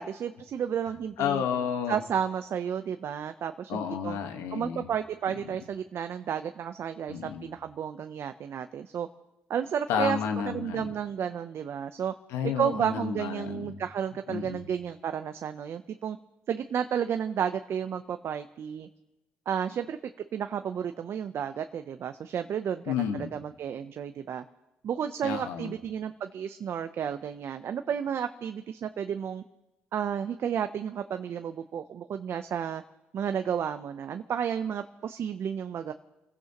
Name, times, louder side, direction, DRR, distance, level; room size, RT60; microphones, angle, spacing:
voice 1, 0.0-1.4 1.9-4.2 4.5-9.1 9.5-10.2 10.5-12.1 12.4-16.2 16.5-18.9 19.5-20.0 20.3-22.9 23.3-24.4 24.8-29.4 29.9-32.8 33.1-35.9, right 8 dB, 60° right, 8 dB, 0.6 m, -32 dB
voice 2, 1.2-2.0 3.7-4.9 5.3-5.4 7.1-7.5 9.9-10.9 12.3-13.8 14.3-14.6 22.9-23.3 25.2-25.7, left 8 dB, 85° left, 6 dB, 1.3 m, -31 dB
27.5 x 16.0 x 3.0 m, 1.0 s
supercardioid pair, 70°, 5 cm